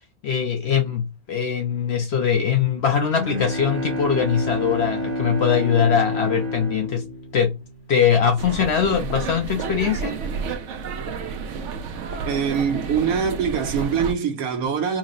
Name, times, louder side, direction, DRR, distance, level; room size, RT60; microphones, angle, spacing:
voice 1, 0.2-7.0 7.3-7.5 7.9-10.1, left 7 dB, 65° left, 0.7 m, -21 dB
Bowed string instrument, 2.8-8.3, left 1 dB, 30° right, 1.0 m, -29 dB
sound 1, 8.4-14.1, right 5 dB, 65° right, 0.9 m, -30 dB
voice 2, 12.2-15.0, right 7 dB, 80° right, 1.3 m, -23 dB
4.0 x 2.0 x 3.8 m
omnidirectional pair, 1.5 m